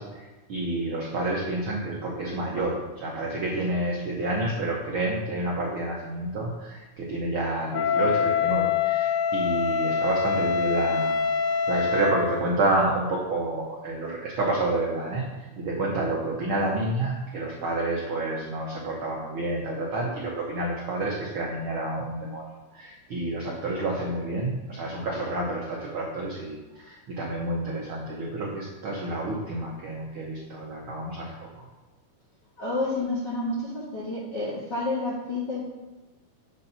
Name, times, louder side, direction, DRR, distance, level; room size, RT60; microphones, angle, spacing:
voice 1, 0.0-22.4 22.7-31.6, right 2 dB, 70° right, -3 dB, 1.2 m, -29 dB
Wind instrument woodwind instrument, 7.7-12.4, left 6 dB, 75° left, 1.9 m, -25 dB
voice 2, 32.6-35.6, left 2 dB, 45° left, -7 dB, 1.5 m, -29 dB
7.5 x 4.1 x 5.5 m, 1.2 s
omnidirectional pair, 3.8 m